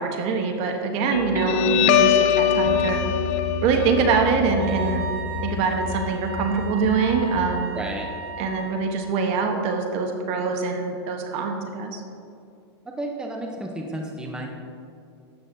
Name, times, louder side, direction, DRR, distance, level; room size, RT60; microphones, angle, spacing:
voice 1, 0.0-3.0 3.6-5.1 5.4-7.7 8.4-12.0, right 5 dB, 45° right, 4 dB, 1.2 m, -24 dB
Guitar, 1.1-8.1, left 7 dB, 45° left, 0.8 m, -23 dB
Wind instrument woodwind instrument, 4.6-8.8, right 4 dB, 65° right, 1.7 m, -35 dB
voice 2, 7.7-8.1 13.0-14.5, right 1 dB, 5° right, 1 dB, 0.9 m, -32 dB
12.5 x 8.6 x 2.7 m, 2.4 s
hypercardioid pair, 125°, 14 cm